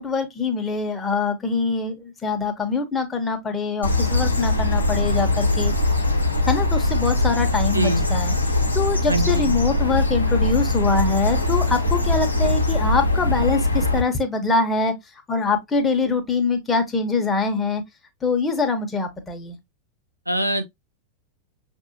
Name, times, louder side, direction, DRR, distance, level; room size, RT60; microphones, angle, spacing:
voice 1, 0.0-5.7 6.5-8.3 8.7-14.9 15.3-17.8 18.2-19.6, left 4 dB, 15° left, 1.2 m, -24 dB
sound 1, 3.8-14.0, left 2 dB, 85° left, 1.0 m, -21 dB
voice 2, 7.6-8.0 9.1-9.5 20.3-20.6, right 2 dB, 85° right, 0.6 m, -23 dB
6.5 x 2.7 x 2.8 m
figure-of-eight pair, 90°, 0 cm